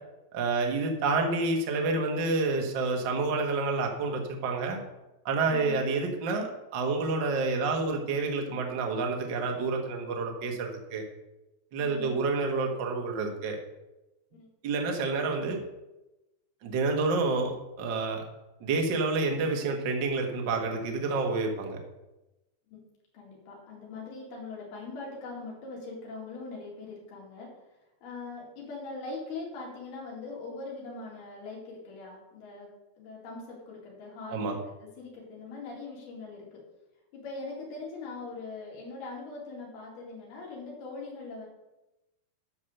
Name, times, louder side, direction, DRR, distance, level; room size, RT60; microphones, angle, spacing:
voice 1, 0.3-4.8 5.2-11.0 11.7-13.6 14.6-15.6 16.6-18.2 18.6-21.8 34.3-34.5, right 3 dB, 55° right, 2 dB, 1.3 m, -29 dB
voice 2, 11.8-12.1 14.3-14.5 22.7-22.8 23.1-27.5 28.0-32.7 33.0-36.6 37.1-41.5, left 3 dB, 90° left, -3 dB, 4.3 m, -41 dB
9.6 x 6.3 x 6.6 m, 0.98 s
omnidirectional pair, 4.4 m